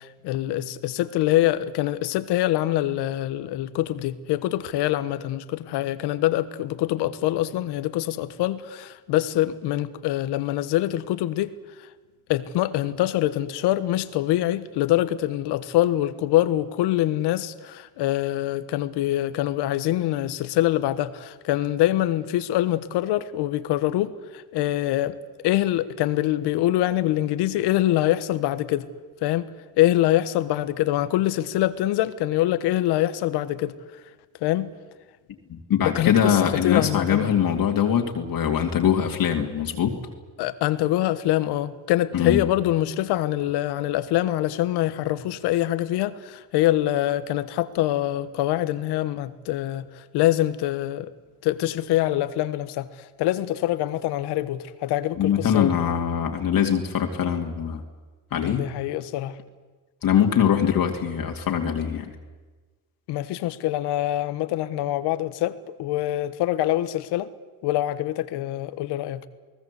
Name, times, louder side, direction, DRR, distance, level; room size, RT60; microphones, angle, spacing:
voice 1, 0.0-11.5 11.8-11.9 12.3-25.2 25.4-28.9 29.2-29.5 29.8-33.8 34.4-34.7 35.8-37.3 40.4-51.1 51.4-55.7 58.4-59.4 63.1-67.3 67.6-69.3, left 14 dB, 85° left, 1.3 m, -24 dB
voice 2, 35.5-39.9 42.1-42.4 55.2-57.8 58.3-58.7 60.0-62.1, left 8 dB, 60° left, 2.4 m, -22 dB
29.0 x 19.0 x 8.2 m
cardioid pair, 80°, 39 cm